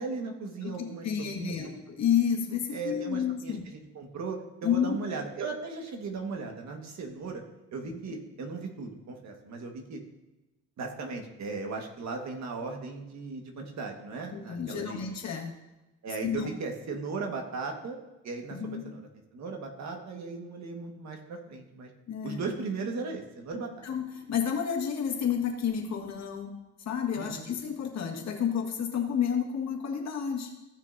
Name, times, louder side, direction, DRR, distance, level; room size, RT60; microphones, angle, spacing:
voice 1, 0.0-1.7 2.7-7.4 7.7-10.0 10.8-15.0 16.0-18.0 18.2-18.6 18.8-19.0 19.3-21.9 22.2-23.8 27.1-27.6, right 4 dB, 65° right, 2 dB, 1.6 m, -37 dB
voice 2, 0.6-3.6 4.6-5.0 14.3-15.5 16.2-16.5 18.5-18.8 22.1-22.5 23.8-26.5 26.8-30.5, left 8 dB, 60° left, 1 dB, 1.7 m, -30 dB
15.0 x 6.4 x 2.7 m, 1.0 s
cardioid pair, 90°, 30 cm